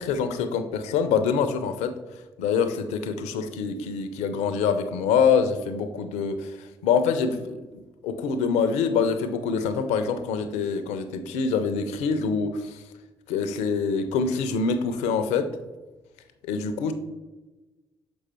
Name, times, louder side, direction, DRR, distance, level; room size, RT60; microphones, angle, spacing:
voice 1, 0.0-1.9 2.4-6.6 6.8-7.6 8.0-12.8 13.3-15.5 16.5-16.9, left 6 dB, 70° left, 10 dB, 0.6 m, -25 dB
6.2 x 4.7 x 4.3 m, 1.2 s
figure-of-eight pair, 40°, 12 cm